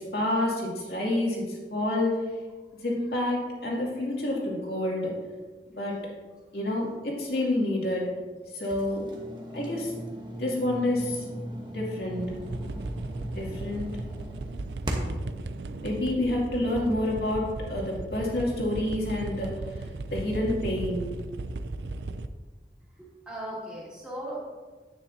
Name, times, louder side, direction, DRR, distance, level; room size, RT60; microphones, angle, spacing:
voice 1, 0.0-2.2 2.8-5.1 5.7-6.1 6.5-8.1 8.5-9.1 9.5-9.9 10.4-11.2 11.7-12.3 13.4-13.9 15.8-19.6 20.1-21.1, left 1 dB, 65° left, -3 dB, 2.4 m, -28 dB
sound 1, 8.6-15.3, equal, 25° right, 1.1 m, -37 dB
sound 2, 12.0-22.3, right 2 dB, 80° right, 0.4 m, -37 dB
voice 2, 23.0-24.4, right 1 dB, 5° right, -7 dB, 2.6 m, -37 dB
9.8 x 9.2 x 2.7 m, 1.4 s
head